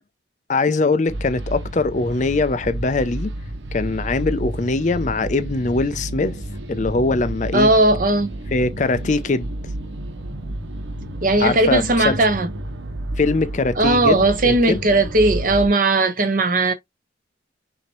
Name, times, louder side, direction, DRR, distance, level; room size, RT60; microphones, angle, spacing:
voice 1, 0.5-3.3 3.7-6.4 6.7-7.7 8.5-9.5 11.4-12.2 13.2-14.9, left 3 dB, 40° left, 0.5 m, -22 dB
sound 1, 1.1-15.7, right 1 dB, 90° right, 1.3 m, -31 dB
voice 2, 7.5-8.3 11.2-12.5 13.8-16.7, right 2 dB, 45° right, 1.0 m, -17 dB
6.0 x 2.8 x 3.0 m
head